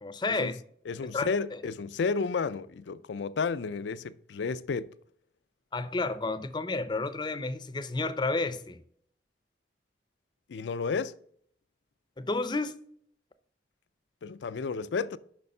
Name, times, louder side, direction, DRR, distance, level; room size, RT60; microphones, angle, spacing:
voice 1, 0.0-0.6 1.1-1.6 5.7-8.8 12.2-12.7, left 3 dB, 25° left, 0.5 m, -31 dB
voice 2, 0.9-4.9 10.5-11.1 14.2-15.2, left 5 dB, 80° left, 0.4 m, -32 dB
6.7 x 5.7 x 5.4 m
head